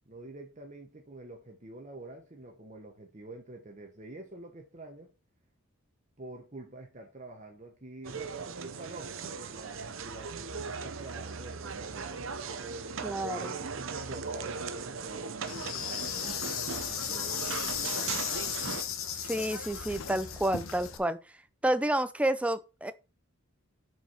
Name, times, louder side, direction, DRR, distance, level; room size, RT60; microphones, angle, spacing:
voice 1, 0.0-5.1 6.2-13.0 13.4-16.4 16.7-18.3 18.8-19.0, right 2 dB, 35° right, 1.0 m, -47 dB
sound 1, 8.0-18.8, right 5 dB, 70° right, 0.7 m, -38 dB
voice 2, 13.0-13.5 19.3-21.2 21.6-22.9, right 1 dB, 5° right, 0.5 m, -29 dB
Insect, 15.5-21.0, left 9 dB, 80° left, 1.1 m, -35 dB
7.1 x 4.8 x 5.6 m
head